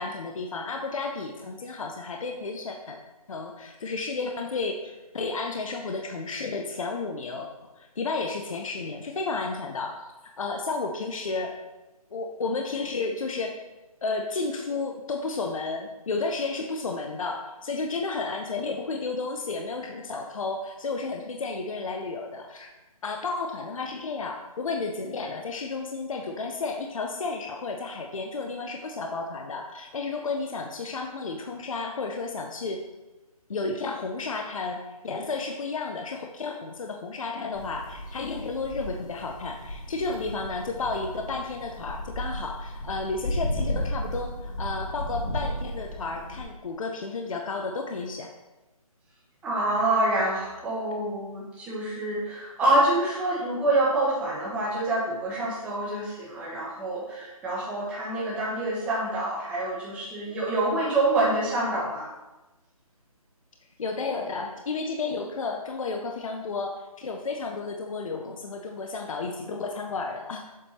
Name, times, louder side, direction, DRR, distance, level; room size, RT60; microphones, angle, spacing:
voice 1, 0.0-3.0 3.3-7.5 7.8-10.1 10.4-11.6 12.1-13.6 14.0-22.7 23.0-32.8 33.5-48.3 63.8-70.4, left 3 dB, 60° left, 3 dB, 0.7 m, -32 dB
sound 1, 37.5-46.4, equal, 30° left, 1.1 m, -34 dB
voice 2, 49.4-62.1, right 2 dB, 5° right, -6 dB, 1.0 m, -26 dB
7.4 x 3.5 x 4.3 m, 1.1 s
hypercardioid pair, 165°, 19 cm